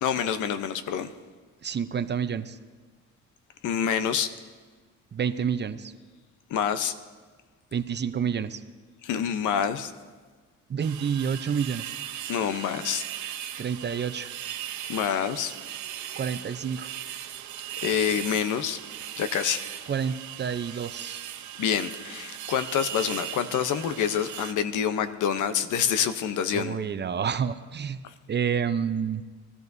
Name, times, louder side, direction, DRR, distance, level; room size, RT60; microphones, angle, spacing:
voice 1, 0.0-1.1 3.6-4.3 6.5-6.9 9.0-9.9 12.3-13.0 14.9-15.5 17.8-18.8 19.2-19.6 21.6-26.8 28.0-28.1, left 8 dB, 80° left, 11 dB, 0.9 m, -27 dB
voice 2, 1.6-2.6 5.1-5.9 7.7-8.6 10.7-11.9 13.6-14.3 16.2-16.9 19.9-21.2 26.5-28.0 28.3-29.2, right 7 dB, 35° right, 11 dB, 0.6 m, -29 dB
sound 1, 10.8-24.5, right 11 dB, 70° right, 0.8 m, -38 dB
22.0 x 14.0 x 2.7 m, 1.4 s
cardioid pair, 90°, 30 cm